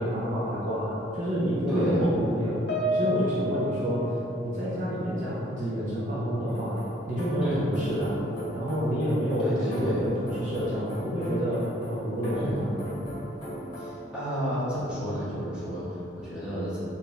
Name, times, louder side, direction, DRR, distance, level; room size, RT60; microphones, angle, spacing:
voice 1, 0.0-2.6 2.9-4.1 4.4-6.8 7.1-8.2 8.5-12.8, equal, 45° right, -9 dB, 0.7 m, -28 dB
voice 2, 1.7-2.0 7.4-7.6 9.4-10.0 12.3-12.6 13.8-16.8, equal, 5° right, -13 dB, 1.4 m, -31 dB
Piano, 2.7-5.3 5.6-5.9 6.7-6.8, equal, 65° left, 0.6 m, -32 dB
sound 1, 6.5-13.9, equal, 25° left, 1.3 m, -40 dB
4.5 x 2.7 x 3.2 m, 2.7 s
head